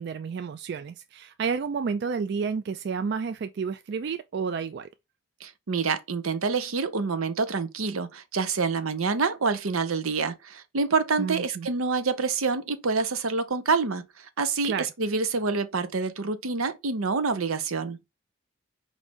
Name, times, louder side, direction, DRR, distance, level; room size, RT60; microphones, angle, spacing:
voice 1, 0.0-4.9 11.2-11.7 14.6-14.9, right 5 dB, 55° right, 0.3 m, -30 dB
voice 2, 5.4-18.0, right 4 dB, 85° right, 0.7 m, -27 dB
4.7 x 2.6 x 3.4 m
head